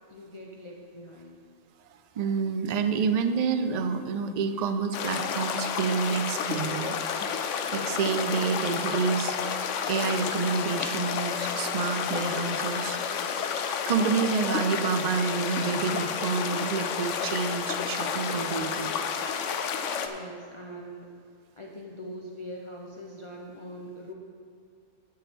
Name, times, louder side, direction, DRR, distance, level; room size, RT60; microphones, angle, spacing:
voice 1, 0.1-1.4 20.0-24.1, equal, 30° left, -1 dB, 0.6 m, -42 dB
voice 2, 2.2-7.0 7.3-13.0 13.9-18.9, right 5 dB, 55° right, 9 dB, 0.4 m, -28 dB
sound 1, 4.9-20.1, left 6 dB, 80° left, 1.0 m, -30 dB
11.0 x 9.1 x 3.5 m, 2.2 s
omnidirectional pair, 1.3 m